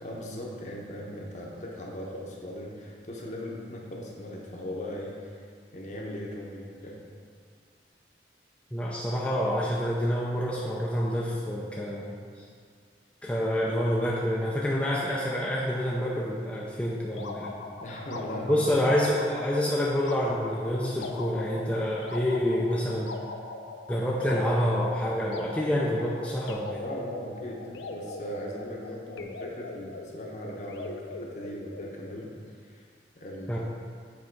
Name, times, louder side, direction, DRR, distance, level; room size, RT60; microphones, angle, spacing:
voice 1, 0.0-5.5 5.7-7.0 17.8-18.6 26.8-32.9 33.1-33.6, equal, 40° left, -2 dB, 0.9 m, -38 dB
voice 2, 8.7-12.4 13.2-17.5 18.5-23.2 23.9-26.8 33.5-33.6, equal, 5° left, -5 dB, 0.4 m, -27 dB
sound 1, 17.1-32.3, left 3 dB, 80° left, 0.5 m, -41 dB
7.4 x 3.5 x 4.5 m, 2.1 s
head